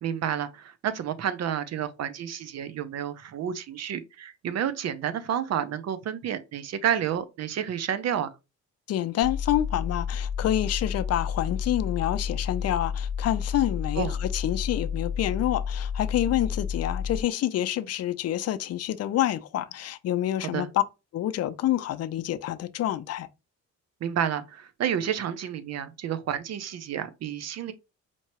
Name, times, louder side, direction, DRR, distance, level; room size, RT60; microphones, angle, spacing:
voice 1, 0.0-8.3 14.0-14.2 20.5-20.7 24.0-27.7, right 9 dB, 60° right, 0.6 m, -30 dB
voice 2, 8.9-20.8 21.1-23.3, left 12 dB, 55° left, 0.5 m, -27 dB
sound 1, 9.2-17.2, left 7 dB, 20° right, 1.3 m, -31 dB
4.5 x 2.8 x 2.9 m
cardioid pair, 90°, 30 cm